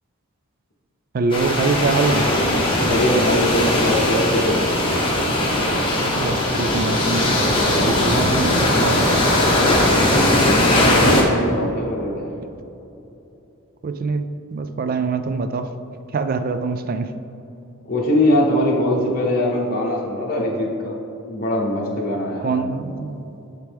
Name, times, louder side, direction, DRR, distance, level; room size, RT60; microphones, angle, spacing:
voice 1, 1.1-2.3 6.0-8.5 8.8-9.1 13.8-15.7 16.1-17.1 22.4-23.3, right 4 dB, 40° right, 9 dB, 0.3 m, -24 dB
sound 1, 1.3-11.2, left 1 dB, 25° left, 1.0 m, -19 dB
voice 2, 2.8-4.6 9.7-12.2 17.9-20.9 21.3-22.6, left 1 dB, 40° left, -4 dB, 0.9 m, -22 dB
11.0 x 4.5 x 3.4 m, 2.9 s
head